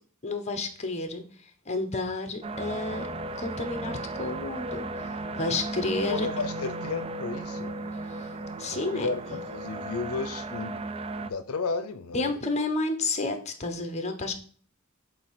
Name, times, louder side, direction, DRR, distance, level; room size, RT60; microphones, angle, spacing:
voice 1, 0.2-3.1 3.4-6.3 8.0-9.1 12.1-14.3, left 2 dB, 30° left, 7 dB, 1.0 m, -31 dB
sound 1, 2.4-11.3, right 2 dB, 25° right, 0.4 m, -35 dB
voice 2, 6.1-7.7 8.7-10.8 11.2-12.3, left 4 dB, 85° left, 10 dB, 0.6 m, -33 dB
7.7 x 2.8 x 5.7 m, 0.43 s
head